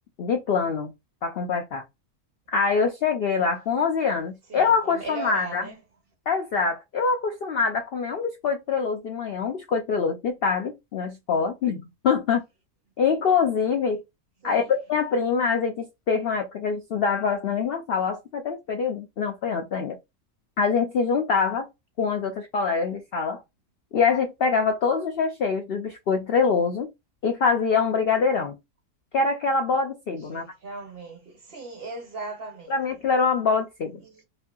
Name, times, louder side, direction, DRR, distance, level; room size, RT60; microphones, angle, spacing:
voice 1, 0.2-0.9 1.2-1.8 2.5-5.7 6.3-12.4 13.0-14.0 14.4-20.0 20.6-21.7 22.0-23.4 23.9-26.9 27.2-28.5 29.1-30.4 32.7-33.9, left 5 dB, 75° left, 0.5 m, -24 dB
voice 2, 4.5-5.7 14.4-14.7 30.2-32.7 34.0-34.2, right 3 dB, 50° right, 0.8 m, -38 dB
3.1 x 2.6 x 2.2 m
omnidirectional pair, 1.6 m